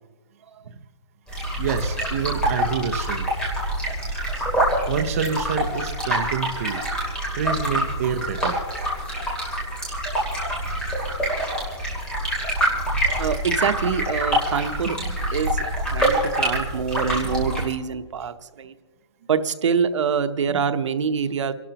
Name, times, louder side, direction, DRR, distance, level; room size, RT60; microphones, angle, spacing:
sound 1, 1.3-17.6, right 1 dB, 5° left, 2.3 m, -25 dB
voice 1, 1.6-3.3 4.9-6.9 7.3-8.6, right 7 dB, 30° right, 7 dB, 0.6 m, -27 dB
voice 2, 13.2-18.7 19.3-21.5, right 6 dB, 85° right, 10 dB, 0.9 m, -25 dB
29.0 x 12.0 x 2.9 m, 1.4 s
hypercardioid pair, 180°, 15 cm